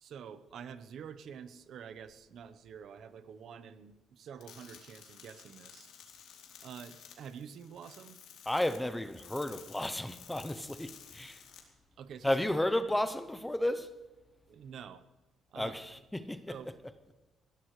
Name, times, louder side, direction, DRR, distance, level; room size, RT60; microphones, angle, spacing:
voice 1, 0.0-5.9 6.6-8.2 12.0-12.4 14.5-15.0 15.5-16.0 16.5-16.7, right 7 dB, 55° right, 0.9 m, -48 dB
sound 1, 4.4-11.6, left 8 dB, 85° left, 3.6 m, -54 dB
voice 2, 8.5-11.4 12.2-13.9 15.6-16.6, left 1 dB, 5° left, 0.6 m, -33 dB
21.0 x 17.0 x 3.2 m
cardioid pair, 160°, 0 cm